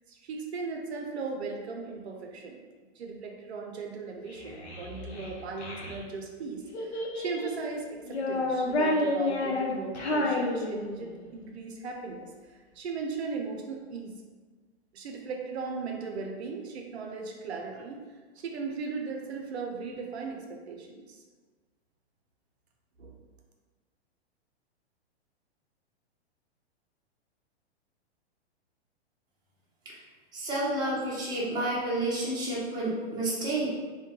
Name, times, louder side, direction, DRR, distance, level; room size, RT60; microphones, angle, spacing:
voice 1, 0.1-2.6 3.0-14.1 14.9-18.0 18.4-21.2 23.0-23.2, right 4 dB, 75° right, 1 dB, 0.5 m, -37 dB
Child speech kid speaking, 4.3-6.0 6.7-7.6 8.0-11.2, left 2 dB, 85° left, 0.6 m, -30 dB
voice 2, 30.3-33.7, right 1 dB, 15° right, -6 dB, 0.6 m, -30 dB
2.2 x 2.1 x 2.8 m, 1.4 s
hypercardioid pair, 120°, 33 cm